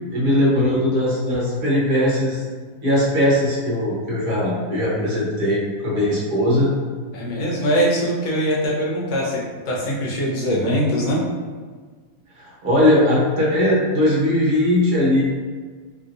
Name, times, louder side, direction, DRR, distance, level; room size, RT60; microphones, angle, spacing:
voice 1, 0.1-2.4 2.8-6.7 12.4-15.2, left 1 dB, 45° right, -6 dB, 0.8 m, -19 dB
voice 2, 7.1-11.2, equal, 75° left, -4 dB, 1.3 m, -22 dB
3.0 x 2.8 x 2.5 m, 1.5 s
omnidirectional pair, 1.8 m